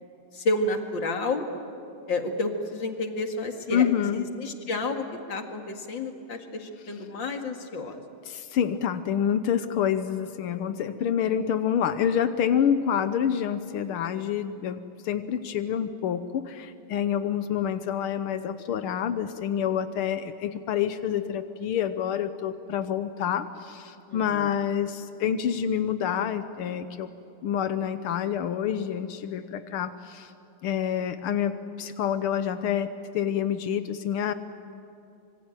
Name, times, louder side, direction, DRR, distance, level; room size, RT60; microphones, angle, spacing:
voice 1, 0.3-1.5 2.1-8.0 24.1-24.5, left 2 dB, 60° left, 4 dB, 2.7 m, -30 dB
voice 2, 3.7-4.2 8.3-27.1 27.4-30.3 30.6-34.3, left 9 dB, 85° left, 10 dB, 1.8 m, -27 dB
25.5 x 24.5 x 9.1 m, 2.8 s
omnidirectional pair, 2.3 m